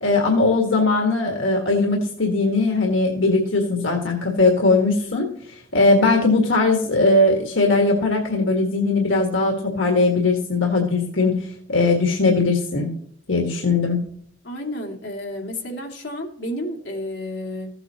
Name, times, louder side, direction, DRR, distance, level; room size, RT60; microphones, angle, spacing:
voice 1, 0.0-5.3 5.7-12.9 13.3-14.0, left 3 dB, 85° left, 2 dB, 1.7 m, -19 dB
voice 2, 14.4-17.7, left 1 dB, 65° left, 1 dB, 2.3 m, -31 dB
15.0 x 7.9 x 2.9 m, 0.63 s
head